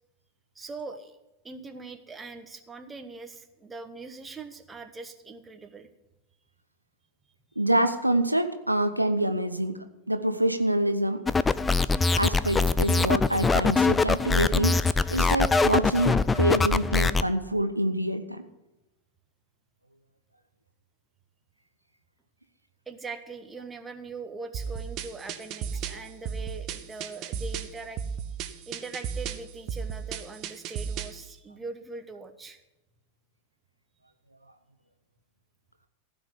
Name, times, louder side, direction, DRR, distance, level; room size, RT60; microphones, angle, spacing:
voice 1, 0.5-1.2 1.4-5.9 22.9-28.0 28.4-32.6, right 3 dB, 15° right, 8 dB, 1.2 m, -41 dB
voice 2, 7.6-11.2 12.2-18.4, right 1 dB, 85° right, 8 dB, 0.9 m, -26 dB
sound 1, 11.3-17.2, left 4 dB, 10° left, 0.5 m, -23 dB
sound 2, 24.5-31.2, right 7 dB, 35° right, 1.0 m, -35 dB
16.0 x 5.4 x 9.6 m, 0.94 s
figure-of-eight pair, 90°, 0 cm